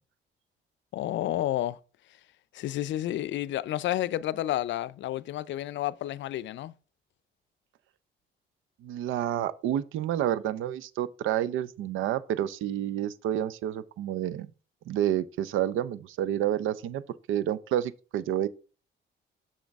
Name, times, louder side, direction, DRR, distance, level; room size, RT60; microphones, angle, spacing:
voice 1, 0.9-1.8 2.5-6.7, left 13 dB, 70° left, 0.4 m, -30 dB
voice 2, 8.8-14.5 14.9-17.0 17.3-18.5, right 11 dB, 85° right, 0.5 m, -29 dB
6.4 x 6.3 x 3.5 m
cardioid pair, 90°, 20 cm